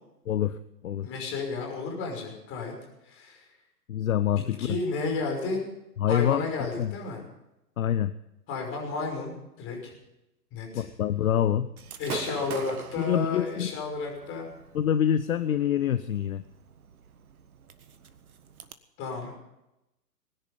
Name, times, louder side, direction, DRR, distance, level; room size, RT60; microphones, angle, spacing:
voice 1, 0.3-0.6 0.8-1.1 3.9-4.8 6.0-6.5 6.8-6.9 7.8-8.1 10.7-11.7 13.0-13.7 14.7-16.4, left 10 dB, 55° left, 13 dB, 0.9 m, -26 dB
voice 2, 1.0-2.7 3.0-3.5 4.6-5.6 6.1-7.2 8.5-9.9 10.5-10.9 12.0-14.5 19.0-19.3, left 4 dB, 25° left, 2 dB, 5.7 m, -32 dB
Gunshot gunfire / Fireworks, 11.8-18.7, right 7 dB, 60° right, 1.6 m, -43 dB
21.0 x 10.5 x 5.5 m, 0.89 s
figure-of-eight pair, 120°, 49 cm